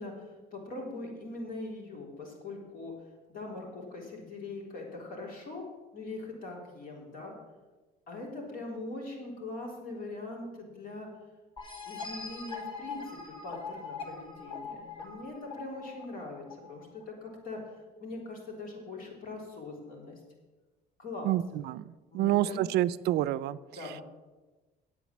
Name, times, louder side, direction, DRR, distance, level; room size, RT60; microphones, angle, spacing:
voice 1, 0.0-2.9 3.3-5.7 5.9-7.3 8.1-11.1 11.8-17.7 18.0-20.2 21.0-21.3 22.1-22.6 23.8-24.0, left 2 dB, 55° left, -1 dB, 3.7 m, -41 dB
sound 1, 11.6-17.0, left 5 dB, 30° left, 2.3 m, -42 dB
voice 2, 21.2-21.8 22.1-23.6, right 14 dB, 75° right, 17 dB, 0.4 m, -28 dB
8.5 x 8.4 x 7.4 m, 1.2 s
cardioid pair, 110°, 17 cm